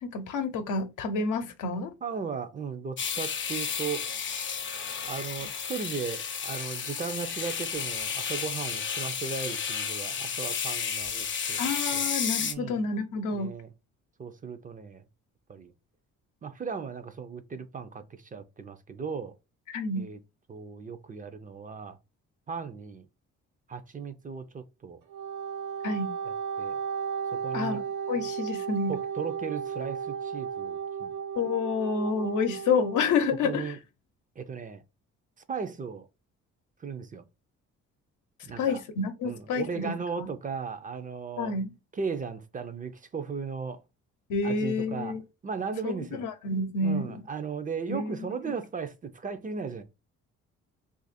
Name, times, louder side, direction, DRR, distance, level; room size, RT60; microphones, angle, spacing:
voice 1, 0.0-1.9 11.6-13.5 19.7-20.1 25.8-26.1 27.5-27.8 28.1-29.0 31.4-33.8 38.6-40.3 41.4-41.7 44.3-45.2 45.8-47.2 47.9-48.2, left 4 dB, 80° left, 0.7 m, -29 dB
voice 2, 2.0-4.1 5.0-11.6 11.9-12.1 12.4-12.8 13.3-13.7 14.2-15.0 15.5-15.7 16.4-19.4 20.0-20.2 20.5-22.0 22.5-23.0 23.7-25.0 26.6-26.8 27.3-27.8 28.9-31.1 33.4-33.8 34.4-34.8 35.5-36.1 36.8-37.2 38.4-38.8 39.2-41.5 41.9-43.8 44.4-45.2 45.4-46.3 46.8-49.8, right 5 dB, 25° right, 0.4 m, -36 dB
sound 1, 3.0-12.5, left 7 dB, 40° left, 0.5 m, -32 dB
Wind instrument woodwind instrument, 25.0-33.1, right 7 dB, 90° right, 1.1 m, -34 dB
2.8 x 2.5 x 4.0 m
cardioid pair, 90°, 30 cm